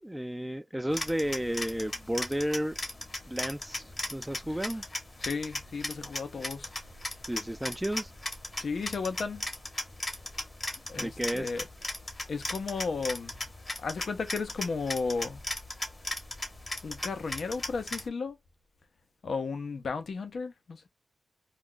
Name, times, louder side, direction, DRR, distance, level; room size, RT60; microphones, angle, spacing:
voice 1, 0.0-2.8 3.3-4.8 7.3-8.1 11.0-11.5, equal, 10° right, 0.4 m, -32 dB
sound 1, 0.9-18.1, left 2 dB, 30° left, 1.0 m, -38 dB
voice 2, 5.2-6.7 8.6-9.5 10.9-11.6 12.3-13.5 13.8-15.4 16.8-18.4 19.2-20.9, left 4 dB, 65° left, 0.6 m, -34 dB
2.3 x 2.2 x 3.8 m
cardioid pair, 75°, 0 cm